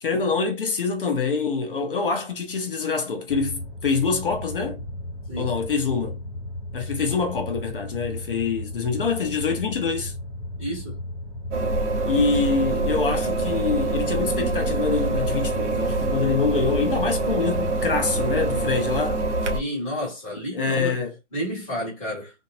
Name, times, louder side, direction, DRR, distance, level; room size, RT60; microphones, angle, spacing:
voice 1, 0.0-4.8 5.4-6.2 6.7-10.1 12.0-19.2 20.5-21.1, left 5 dB, 45° left, 0.6 m, -25 dB
sound 1, 3.3-18.8, left 1 dB, 20° left, 1.1 m, -35 dB
voice 2, 10.6-11.0 19.5-21.0 21.3-22.3, equal, 5° left, 0.5 m, -30 dB
sound 2, 11.5-19.6, right 2 dB, 70° right, 0.6 m, -25 dB
2.5 x 2.0 x 2.6 m
hypercardioid pair, 165°, 37 cm